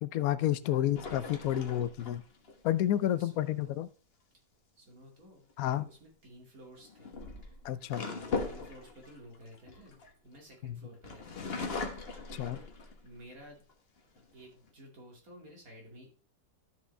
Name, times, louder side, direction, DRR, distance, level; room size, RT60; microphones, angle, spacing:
voice 1, 0.0-2.2 2.6-3.9 5.6-5.9 7.6-8.0 10.6-10.8 12.4-12.6, left 12 dB, 70° left, 14 dB, 0.9 m, -30 dB
sound 1, 1.0-2.6 5.5-5.8 6.8-10.5 11.0-13.2 13.7-13.8 14.2-14.7, left 4 dB, 40° left, 1.3 m, -39 dB
voice 2, 3.1-3.8 4.8-5.4 5.8-7.2 7.9-10.0 10.2-12.6 13.0-13.6 14.3-16.1, equal, 55° right, 0 dB, 2.8 m, -53 dB
12.5 x 5.2 x 3.3 m, 0.38 s
omnidirectional pair, 1.8 m